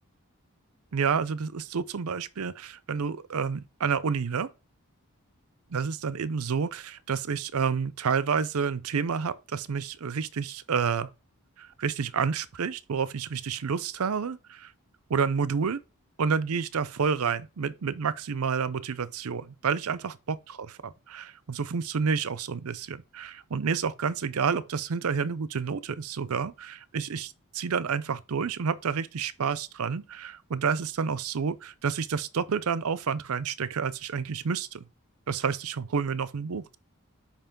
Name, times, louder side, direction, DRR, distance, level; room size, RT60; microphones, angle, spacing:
voice 1, 0.9-4.5 5.7-11.1 11.6-14.7 15.1-15.8 16.2-20.4 20.7-34.8 35.3-36.8, right 6 dB, 80° right, 0.6 m, -29 dB
5.7 x 5.2 x 5.2 m
head